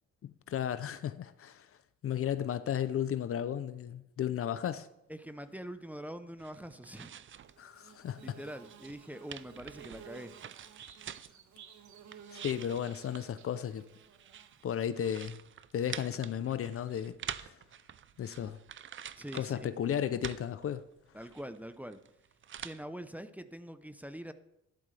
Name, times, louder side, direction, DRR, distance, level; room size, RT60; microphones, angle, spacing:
voice 1, 0.2-1.7 2.0-4.9 7.6-8.2 12.3-13.9 14.6-15.4 15.7-17.5 18.2-18.6 19.3-20.8, left 9 dB, 50° left, 0.6 m, -34 dB
voice 2, 5.1-7.1 8.2-10.3 19.2-19.7 21.1-22.0 22.6-24.3, equal, 5° right, 0.7 m, -44 dB
sound 1, 6.4-7.6 7.9-11.4 11.9-19.7 20.0-22.8, right 9 dB, 40° right, 0.5 m, -47 dB
Bird / Buzz, 7.4-15.1, right 7 dB, 70° right, 1.4 m, -55 dB
12.0 x 11.5 x 3.3 m
cardioid pair, 90°, 30 cm